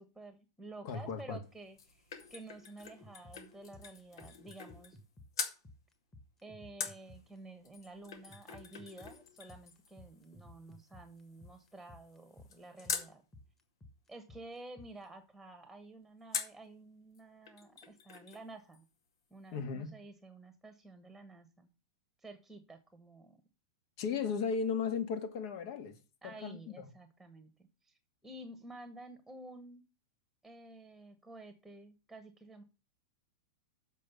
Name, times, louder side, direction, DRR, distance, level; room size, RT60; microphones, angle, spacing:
voice 1, 0.0-5.0 6.4-13.2 14.1-18.8 19.3-21.7 22.2-23.4 26.2-27.5 27.8-29.8 30.4-32.6, right 2 dB, 5° right, 1.2 m, -51 dB
voice 2, 0.8-1.4 19.5-20.0 24.0-26.0 26.2-26.9, left 6 dB, 60° left, 1.8 m, -36 dB
sound 1, 1.4-5.1 5.3-5.6 6.8-13.1 16.3-16.7 17.1-17.2 17.5-18.5 18.7-18.8, left 6 dB, 75° left, 2.0 m, -44 dB
sound 2, 2.8-7.4 8.3-15.1, left 2 dB, 10° left, 1.5 m, -54 dB
7.4 x 5.2 x 6.9 m
hypercardioid pair, 125°, 2 cm